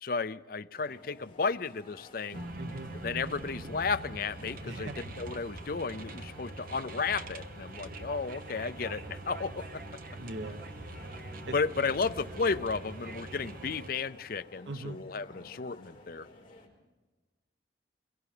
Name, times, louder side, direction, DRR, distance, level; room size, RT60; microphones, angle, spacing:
voice 1, 0.0-2.5 3.0-9.7 11.5-16.3, left 4 dB, 50° left, 14 dB, 0.6 m, -33 dB
sound 1, 0.7-16.7, left 2 dB, 30° left, 4.9 m, -54 dB
sound 2, 2.3-13.9, right 2 dB, 50° right, 1.3 m, -43 dB
voice 2, 2.6-2.9 4.6-4.9 10.2-10.7 11.5-11.6 14.7-15.1, right 2 dB, 75° right, 8 dB, 1.2 m, -40 dB
24.0 x 22.5 x 5.0 m, 1.2 s
head